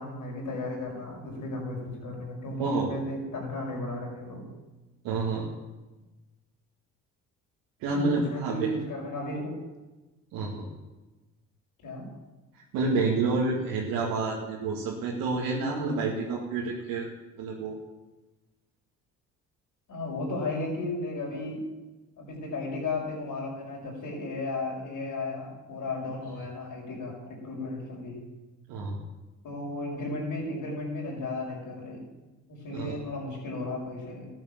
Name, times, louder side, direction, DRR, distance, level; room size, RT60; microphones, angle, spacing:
voice 1, 0.0-4.5 7.9-9.5 11.8-12.1 19.9-21.6 22.2-28.2 29.4-32.0 32.5-34.3, left 2 dB, 65° left, -1 dB, 6.0 m, -34 dB
voice 2, 2.6-2.9 5.0-5.5 7.8-8.7 10.3-10.7 12.5-17.1 17.4-17.8 28.7-29.0 32.7-33.0, right 3 dB, 80° right, -4 dB, 2.3 m, -29 dB
13.5 x 8.9 x 7.4 m, 1.1 s
hypercardioid pair, 55°, 35 cm